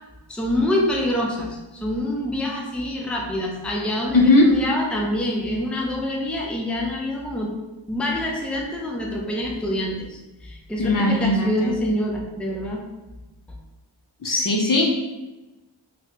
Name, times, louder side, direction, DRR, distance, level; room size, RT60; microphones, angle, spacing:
voice 1, 0.3-7.5 7.9-12.8, left 1 dB, ahead, -1 dB, 0.5 m, -26 dB
voice 2, 4.1-4.5 10.8-11.7 14.2-14.9, left 2 dB, 45° left, 0 dB, 0.6 m, -18 dB
4.0 x 2.1 x 2.9 m, 1.1 s
wide cardioid pair, 55°, 48 cm